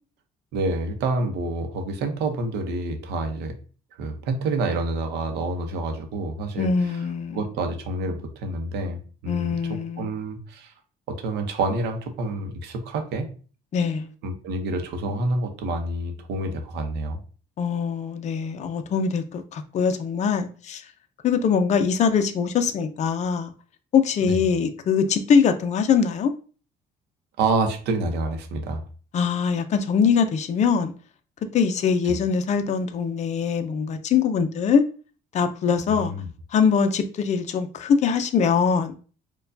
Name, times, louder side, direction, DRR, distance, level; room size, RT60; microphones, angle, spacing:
voice 1, 0.5-3.5 4.0-7.0 7.3-9.6 10.0-10.7 11.1-13.3 14.2-17.2 24.2-24.4 27.4-28.8 32.0-32.1 35.9-36.3, right 2 dB, 80° right, 0.7 m, -28 dB
voice 2, 6.6-7.4 9.3-10.1 13.7-14.1 17.6-20.8 21.2-23.5 23.9-26.3 29.1-30.9 31.5-34.8 35.3-36.1 36.5-39.0, left 6 dB, 45° left, 0.5 m, -22 dB
4.4 x 2.3 x 2.6 m
cardioid pair, 110°, 17 cm